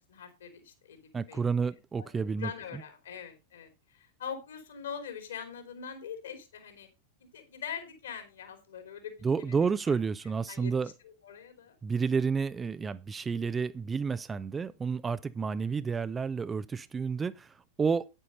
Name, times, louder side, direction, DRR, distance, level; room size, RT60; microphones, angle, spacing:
voice 1, 0.1-2.1 2.4-6.9 7.3-10.0 10.5-10.7 11.0-11.8, left 7 dB, 65° left, 3.3 m, -43 dB
voice 2, 1.1-2.5 9.2-10.9 11.8-18.1, right 5 dB, 15° right, 0.5 m, -30 dB
9.7 x 9.0 x 4.1 m
figure-of-eight pair, 90°, 0 cm